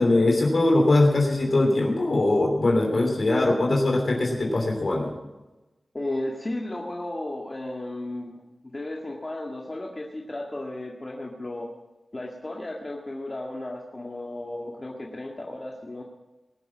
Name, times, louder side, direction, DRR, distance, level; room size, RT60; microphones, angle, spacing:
voice 1, 0.0-5.1, left 2 dB, 60° left, 0 dB, 3.1 m, -21 dB
voice 2, 5.9-11.7 12.1-16.0, left 1 dB, 35° left, -1 dB, 1.9 m, -34 dB
20.0 x 7.0 x 7.3 m, 1.1 s
cardioid pair, 55°, 0 cm